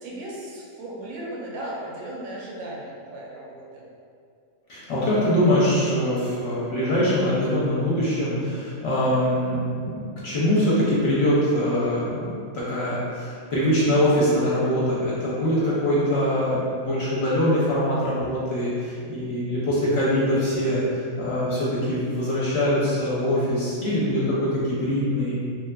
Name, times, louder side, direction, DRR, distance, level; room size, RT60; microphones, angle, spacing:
voice 1, 0.0-3.8, right 1 dB, 75° right, -4 dB, 1.0 m, -36 dB
voice 2, 4.7-25.3, equal, 60° left, -8 dB, 0.8 m, -23 dB
3.0 x 2.4 x 2.2 m, 2.3 s
omnidirectional pair, 1.4 m